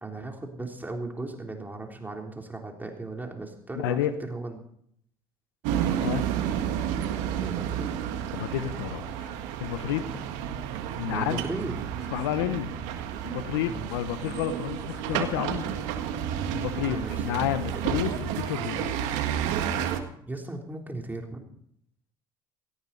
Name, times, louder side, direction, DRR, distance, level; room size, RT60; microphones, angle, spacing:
voice 1, 0.0-4.0 4.3-4.6 7.4-7.9 11.1-11.8 13.7-14.0 16.9-17.5 17.7-17.9 20.3-21.4, right 2 dB, 15° right, 2 dB, 3.5 m, -37 dB
voice 2, 3.7-4.1 6.0-6.3 8.3-9.3 9.6-10.1 11.0-11.4 12.1-12.7 13.2-15.7 16.5-18.9, left 12 dB, 80° left, 12 dB, 1.2 m, -30 dB
sound 1, 5.6-20.0, right 9 dB, 70° right, 1.8 m, -31 dB
17.0 x 16.0 x 4.1 m, 0.68 s
hypercardioid pair, 65°, 13 cm